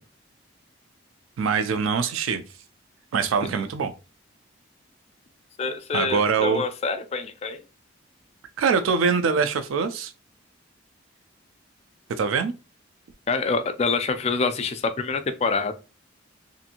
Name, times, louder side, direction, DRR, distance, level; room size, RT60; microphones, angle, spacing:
voice 1, 1.4-2.4 3.1-3.9 5.9-6.6 8.6-10.1 12.2-12.5, right 5 dB, 90° right, 0.4 m, -23 dB
voice 2, 5.6-7.6 13.3-15.7, left 4 dB, 30° left, 0.3 m, -26 dB
2.6 x 2.5 x 2.7 m
head